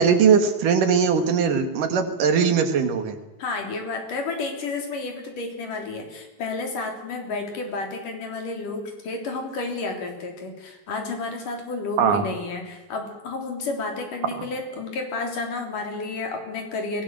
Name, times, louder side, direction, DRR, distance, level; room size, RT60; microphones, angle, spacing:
voice 1, 0.0-3.2 12.0-12.2, right 6 dB, 80° right, 7 dB, 3.6 m, -20 dB
voice 2, 3.4-17.0, left 3 dB, 80° left, 3 dB, 5.1 m, -31 dB
22.5 x 18.0 x 7.7 m, 1.1 s
omnidirectional pair, 3.7 m